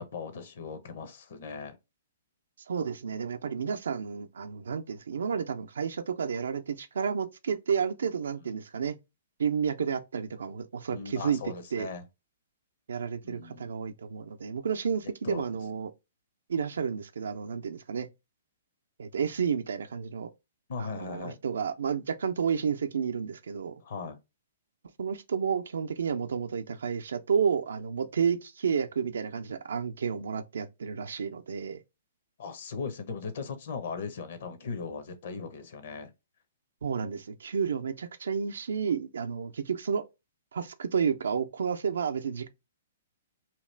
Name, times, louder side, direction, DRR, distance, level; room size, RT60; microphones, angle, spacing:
voice 1, 0.0-1.8 10.9-12.0 13.2-13.8 15.2-15.4 20.7-21.4 23.8-24.2 32.4-36.1, left 5 dB, 60° left, 0.8 m, -38 dB
voice 2, 2.7-9.0 9.4-11.4 11.7-11.9 12.9-15.9 16.5-18.1 19.0-20.3 20.8-23.8 25.0-31.8 36.8-40.0 40.5-42.5, right 6 dB, 75° right, 0.4 m, -31 dB
2.9 x 2.4 x 3.2 m
hypercardioid pair, 130°, 0 cm